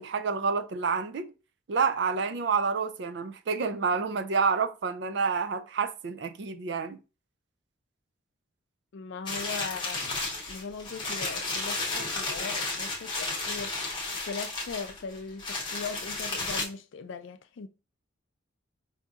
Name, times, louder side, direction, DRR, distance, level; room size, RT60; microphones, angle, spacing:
voice 1, 0.0-1.3 1.7-7.0, right 5 dB, 55° right, 0.4 m, -28 dB
voice 2, 8.9-10.2 10.5-17.7, left 5 dB, 70° left, 0.4 m, -39 dB
sound 1, 9.3-16.6, left 3 dB, 25° left, 0.8 m, -33 dB
4.9 x 2.7 x 2.3 m
head